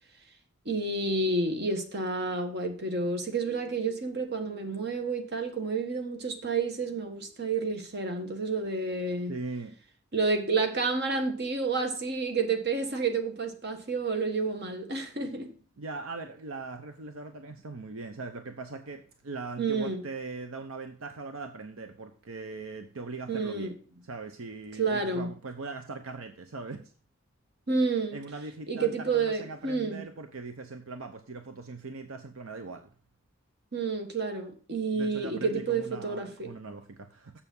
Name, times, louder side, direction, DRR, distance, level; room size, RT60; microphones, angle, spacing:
voice 1, 0.6-9.3 10.1-15.5 19.6-20.0 23.3-23.7 24.8-25.3 27.7-28.2 28.7-30.1 33.7-36.5, right 4 dB, 50° right, 1.4 m, -30 dB
voice 2, 9.3-9.8 15.8-23.7 24.1-26.8 28.1-32.9 34.9-37.3, right 3 dB, 80° right, 0.8 m, -40 dB
7.2 x 7.0 x 5.4 m
head